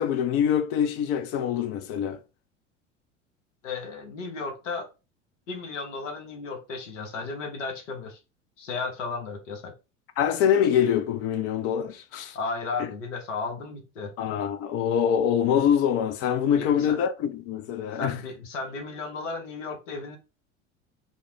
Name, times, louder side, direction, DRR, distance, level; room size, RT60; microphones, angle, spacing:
voice 1, 0.0-2.2 10.2-12.4 14.2-18.2, left 8 dB, 40° left, 0.4 m, -24 dB
voice 2, 3.6-4.9 5.5-8.2 8.6-9.7 12.3-14.1 16.6-17.0 17.9-20.2, left 4 dB, 75° left, 0.8 m, -34 dB
2.4 x 2.0 x 3.1 m
figure-of-eight pair, 75°, 38 cm